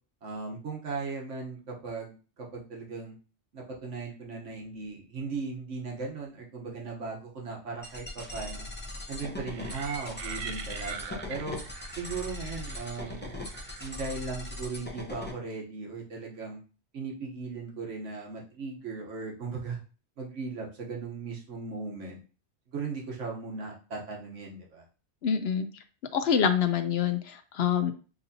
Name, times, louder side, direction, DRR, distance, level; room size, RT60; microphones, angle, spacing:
voice 1, 0.2-3.1 3.5-8.7 9.1-11.6 12.0-13.3 13.8-16.6 16.9-19.8 20.2-22.2 22.7-24.8, right 4 dB, 90° right, -1 dB, 1.4 m, -37 dB
sound 1, 7.8-15.3, left 2 dB, 15° left, 0.5 m, -40 dB
sound 2, 9.5-14.3, right 6 dB, 60° right, 0.7 m, -43 dB
voice 2, 25.2-25.7 26.1-27.9, left 7 dB, 65° left, 9 dB, 0.7 m, -26 dB
6.7 x 2.7 x 2.7 m, 0.36 s
omnidirectional pair, 1.2 m